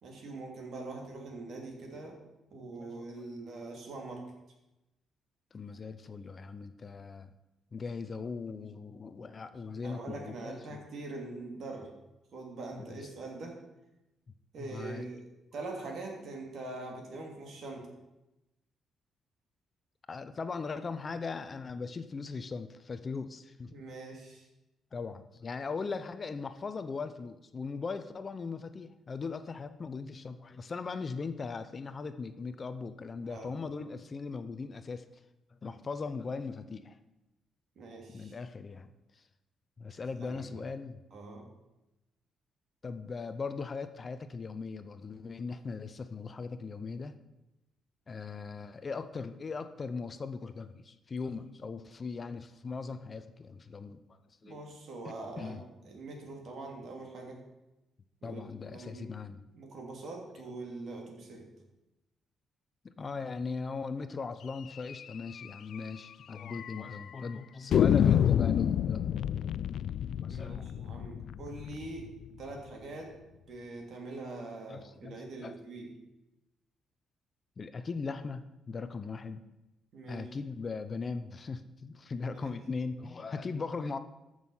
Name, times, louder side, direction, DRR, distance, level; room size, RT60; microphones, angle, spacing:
voice 1, 0.0-2.2 2.5-4.3 9.8-11.9 12.3-13.6 14.5-15.2 15.5-17.9 23.7-24.5 33.2-33.6 37.8-38.4 40.2-40.6 41.1-41.5 54.4-57.4 58.2-59.1 59.5-61.5 70.3-73.1 73.5-75.9 79.9-80.3 82.4-82.6, right 2 dB, 60° right, 1 dB, 2.9 m, -43 dB
voice 2, 5.5-7.3 7.7-10.8 12.8-13.1 14.6-15.1 20.1-23.7 24.9-35.1 35.6-37.0 38.1-38.9 39.2-39.3 39.8-41.0 42.8-47.1 48.1-54.0 54.4-54.6 55.4-55.6 58.2-59.4 62.8-69.1 70.2-70.7 74.7-75.6 77.6-79.4 80.1-84.0, left 4 dB, 30° left, 11 dB, 0.6 m, -39 dB
sound 1, 64.9-65.0 65.4-65.5 65.7-65.8 66.5-67.0 67.7-72.5, left 9 dB, 65° left, 0.3 m, -28 dB
14.0 x 6.3 x 5.6 m, 0.96 s
cardioid pair, 125°, 0 cm